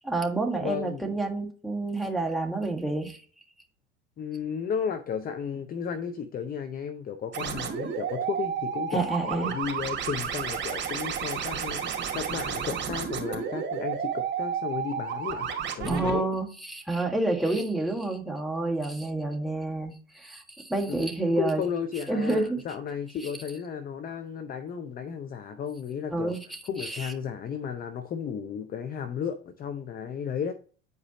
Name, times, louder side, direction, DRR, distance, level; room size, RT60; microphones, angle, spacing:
voice 1, 0.0-3.2 8.9-9.5 15.8-21.6 22.1-22.6 25.5-25.6 26.1-27.1, right 2 dB, ahead, 5 dB, 1.5 m, -29 dB
voice 2, 0.6-1.2 4.2-15.5 15.8-16.3 20.9-26.4 26.6-30.5, left 7 dB, 25° left, 9 dB, 0.6 m, -34 dB
sound 1, 7.3-16.2, right 7 dB, 30° right, 2.4 m, -32 dB
9.4 x 4.9 x 2.9 m, 0.40 s
figure-of-eight pair, 75°, 37 cm